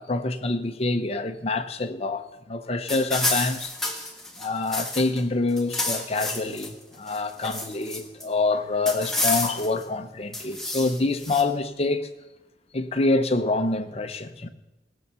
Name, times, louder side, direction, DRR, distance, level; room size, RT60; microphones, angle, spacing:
voice 1, 0.0-3.7 4.4-12.1 12.7-14.5, left 3 dB, 35° left, 0.9 m, -26 dB
sound 1, 2.9-5.2 5.5-6.7 7.1-8.2 8.9-9.8 10.3-11.4, left 1 dB, ahead, 1.6 m, -30 dB
18.0 x 7.0 x 6.9 m
head